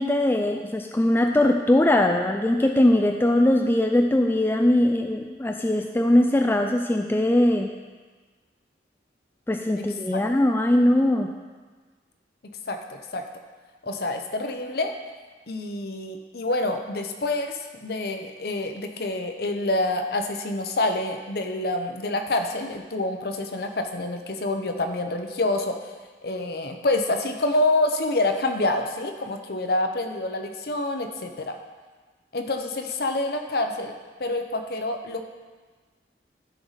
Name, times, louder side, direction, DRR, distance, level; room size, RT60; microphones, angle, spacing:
voice 1, 0.0-7.7 9.5-11.3, left 1 dB, 10° left, 4 dB, 0.3 m, -21 dB
voice 2, 12.7-13.2 13.8-14.9 15.5-25.9 26.2-31.6 32.3-35.2, left 2 dB, 60° left, 5 dB, 0.8 m, -27 dB
13.0 x 4.7 x 4.1 m, 1.4 s
head